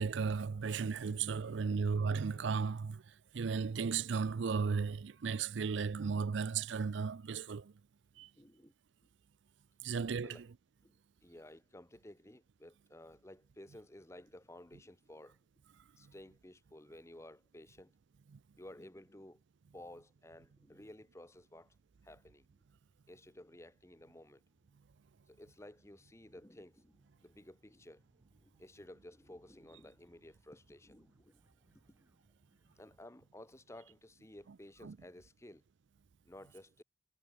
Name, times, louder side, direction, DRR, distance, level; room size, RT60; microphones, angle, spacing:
voice 1, 0.0-3.0 3.3-7.7 8.2-8.3 9.8-10.4 34.8-34.9, right 5 dB, 65° right, 0.4 m, -35 dB
voice 2, 8.4-8.7 9.9-10.4 10.8-15.4 16.0-17.9 18.6-19.4 19.7-21.7 22.0-22.5 23.1-24.4 25.3-28.0 28.4-31.4 32.7-35.6 36.2-36.8, left 1 dB, 15° left, 1.0 m, -55 dB
sound 1, 21.1-33.0, equal, 10° right, 4.2 m, -75 dB
head